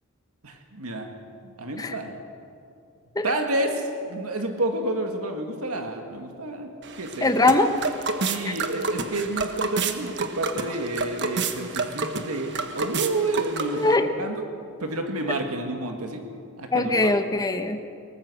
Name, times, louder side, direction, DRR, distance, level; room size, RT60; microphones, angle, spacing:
voice 1, 0.4-1.1 1.4-2.2 3.2-6.7 7.0-7.3 8.3-14.4 14.8-16.2 16.6-17.1, right 2 dB, 80° right, 4 dB, 2.1 m, -29 dB
sound 1, 6.8-14.0, right 4 dB, 55° right, 1.3 m, -30 dB
voice 2, 7.2-7.7 8.4-8.5 13.7-14.1 16.7-17.8, left 2 dB, 15° left, 7 dB, 0.9 m, -21 dB
22.5 x 19.0 x 6.3 m, 2.5 s
head